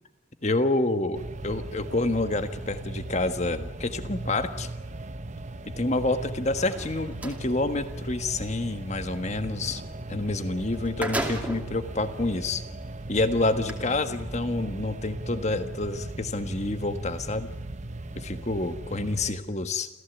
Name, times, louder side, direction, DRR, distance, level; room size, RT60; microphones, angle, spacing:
voice 1, 0.4-4.7 5.7-9.8 10.1-12.6 13.1-17.5 18.1-19.9, left 2 dB, 35° left, 9 dB, 1.5 m, -28 dB
sound 1, 1.1-19.3, right 2 dB, 35° right, 0.9 m, -38 dB
sound 2, 6.5-7.4 10.3-10.4 10.7-11.8 12.5-12.6 13.5-13.7, right 1 dB, 5° right, 2.6 m, -33 dB
28.5 x 15.5 x 8.1 m, 1.1 s
head